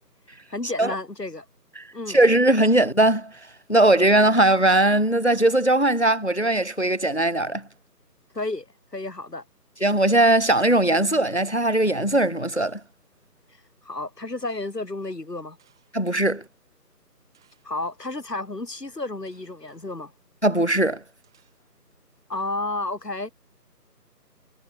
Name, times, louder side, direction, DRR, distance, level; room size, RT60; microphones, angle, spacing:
voice 1, 0.5-1.4 1.9-2.2 8.3-8.7 8.9-9.4 13.8-15.6 17.6-20.1 22.3-23.3, left 2 dB, 75° left, 3.1 m, -31 dB
voice 2, 1.8-3.3 3.7-7.6 9.8-12.8 15.9-16.4 20.4-21.0, right 1 dB, 45° left, 0.5 m, -19 dB
sound 1, 8.3-9.2 10.5-11.1 12.5-13.1 14.4-14.8 15.6-16.3 17.3-17.8 19.3-19.8 21.2-22.0, right 9 dB, 5° right, 2.1 m, -65 dB
figure-of-eight pair, 165°, 49 cm